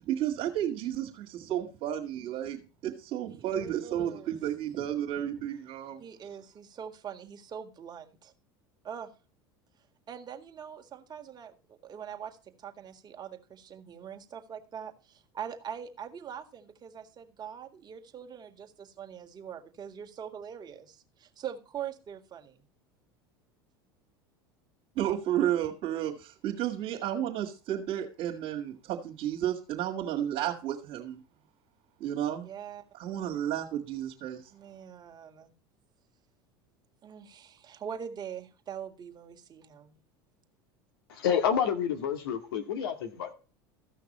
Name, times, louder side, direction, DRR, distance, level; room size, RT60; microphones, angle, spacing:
voice 1, 0.1-6.0 25.0-31.2 32.0-32.5 32.9-34.4, right 11 dB, 60° right, -2 dB, 1.9 m, -32 dB
voice 2, 3.3-4.3 6.0-8.3 8.8-9.1 10.1-22.7 32.4-32.8 34.5-35.5 37.0-40.0, right 8 dB, 35° right, 5 dB, 1.9 m, -43 dB
voice 3, 41.1-43.3, left 8 dB, 80° left, 6 dB, 2.0 m, -29 dB
15.0 x 6.0 x 4.2 m, 0.34 s
hypercardioid pair, 85°, 12 cm